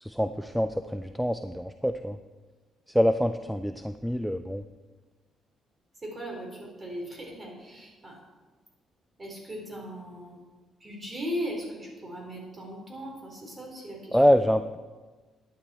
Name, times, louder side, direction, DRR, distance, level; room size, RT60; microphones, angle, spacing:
voice 1, 0.0-2.2 2.9-4.6 14.1-14.8, equal, ahead, 9 dB, 0.4 m, -25 dB
voice 2, 6.0-8.2 9.2-10.4 10.8-14.2, equal, 25° right, 0 dB, 3.6 m, -38 dB
12.0 x 9.8 x 4.3 m, 1.3 s
cardioid pair, 115°, 0 cm